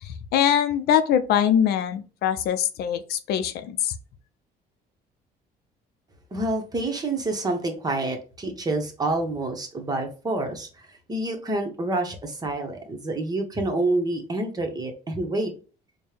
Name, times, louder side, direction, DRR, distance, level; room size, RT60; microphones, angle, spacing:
voice 1, 0.0-3.9, left 9 dB, 70° left, 11 dB, 0.5 m, -23 dB
voice 2, 6.3-15.5, right 2 dB, 25° right, 4 dB, 0.9 m, -28 dB
4.2 x 2.2 x 3.3 m, 0.36 s
cardioid pair, 110°, 17 cm